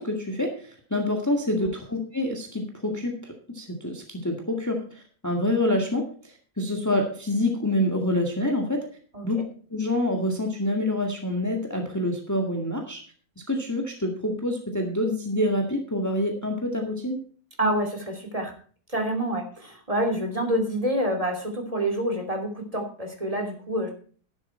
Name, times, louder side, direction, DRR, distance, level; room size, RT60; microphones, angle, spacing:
voice 1, 0.0-8.9 9.2-9.4 9.7-13.0 13.5-17.2, left 1 dB, 10° left, 2 dB, 1.9 m, -27 dB
voice 2, 17.6-18.5 18.9-23.9, right 1 dB, 20° right, 3 dB, 3.0 m, -27 dB
12.0 x 11.5 x 4.4 m, 0.43 s
omnidirectional pair, 1.6 m